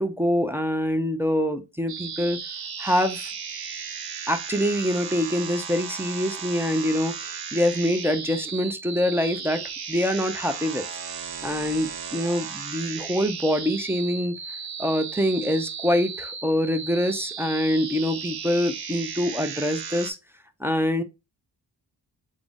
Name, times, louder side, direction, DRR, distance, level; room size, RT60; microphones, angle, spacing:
voice 1, 0.0-2.4 2.8-3.3 4.3-10.9 11.4-14.3 14.8-20.2 20.6-21.0, equal, 5° right, 0.4 m, -25 dB
sound 1, 1.9-20.1, right 6 dB, 60° right, 0.6 m, -35 dB
3.7 x 2.1 x 3.4 m
cardioid pair, 70°, 41 cm